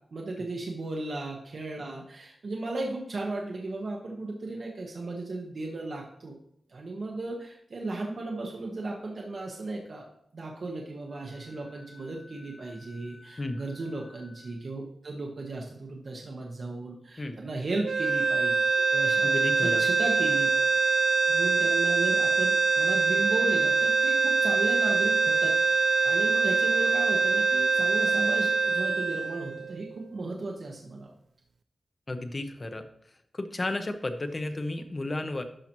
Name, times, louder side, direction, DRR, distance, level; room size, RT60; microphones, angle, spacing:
voice 1, 0.1-6.3 6.7-10.0 10.3-18.6 18.9-20.5 21.3-31.1, right 2 dB, 55° right, -1 dB, 1.1 m, -35 dB
Wind instrument woodwind instrument, 11.1-14.6, left 2 dB, 70° left, 2.7 m, -54 dB
sound 1, 17.8-30.1, right 4 dB, 70° right, 0.3 m, -24 dB
voice 2, 19.2-19.8 32.1-32.9 33.3-35.4, left 2 dB, 30° left, 7 dB, 0.7 m, -32 dB
11.5 x 5.7 x 3.0 m, 0.71 s
wide cardioid pair, 145°, 0 cm